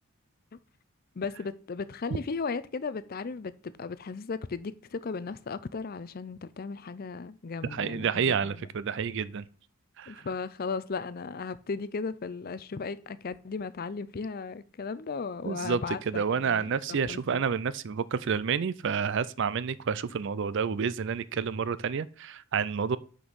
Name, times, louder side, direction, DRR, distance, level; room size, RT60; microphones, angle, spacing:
voice 1, 1.2-8.7 10.1-16.7 17.1-17.4, left 4 dB, 40° left, 0.4 m, -36 dB
voice 2, 7.7-9.5 10.0-10.2 15.4-15.8 16.1-23.0, right 6 dB, 55° right, 0.4 m, -29 dB
6.2 x 5.4 x 6.2 m
head